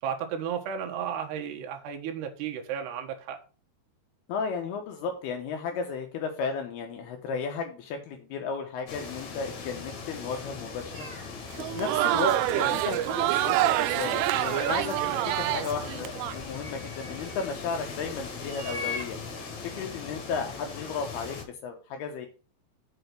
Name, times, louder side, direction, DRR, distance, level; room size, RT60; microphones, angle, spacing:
voice 1, 0.0-3.4, right 8 dB, 70° right, 3.1 m, -33 dB
voice 2, 4.3-15.0 15.4-19.2 19.6-22.3, left 5 dB, 75° left, 2.5 m, -34 dB
sound 1, 8.9-21.4, left 5 dB, 50° left, 2.3 m, -40 dB
sound 2, 10.9-11.3 12.4-12.5 12.8-12.9 14.2-15.0 16.2-17.6 18.4-19.1, left 3 dB, 30° right, 1.9 m, -40 dB
Crowd, 11.5-16.4, right 16 dB, 90° right, 3.1 m, -26 dB
7.7 x 5.3 x 6.7 m
omnidirectional pair, 5.6 m